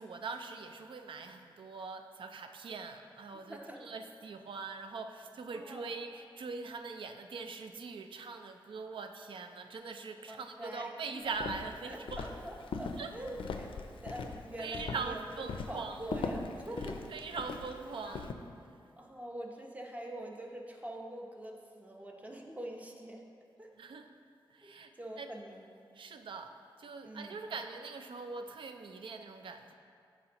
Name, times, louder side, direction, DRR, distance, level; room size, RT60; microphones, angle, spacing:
voice 1, 0.0-12.2 13.0-13.1 14.6-16.0 17.1-18.4 23.8-24.1 24.5-24.9 25.2-25.3 26.0-26.5 26.8-29.7, right 4 dB, 75° right, 6 dB, 0.4 m, -42 dB
voice 2, 3.5-3.8 5.5-5.9 10.3-11.0 11.9-13.7 14.0-16.4 16.7-17.0 19.0-23.2 23.6-23.7 24.6-24.7 25.0-25.7 27.0-27.4, right 1 dB, 15° right, 0 dB, 0.8 m, -44 dB
Walk footsteps, 11.3-18.3, left 4 dB, 80° left, 0.4 m, -40 dB
12.0 x 4.3 x 2.9 m, 2.3 s
wide cardioid pair, 85°, 9 cm